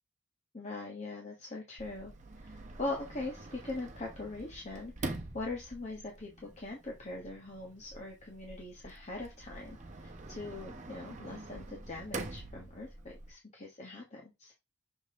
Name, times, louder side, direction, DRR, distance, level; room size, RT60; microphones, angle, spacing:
voice 1, 0.5-14.5, left 2 dB, 35° left, -1 dB, 1.2 m, -42 dB
Sliding door, 1.8-13.3, right 2 dB, 35° right, 1.0 m, -46 dB
6.5 x 4.1 x 3.6 m, 0.23 s
head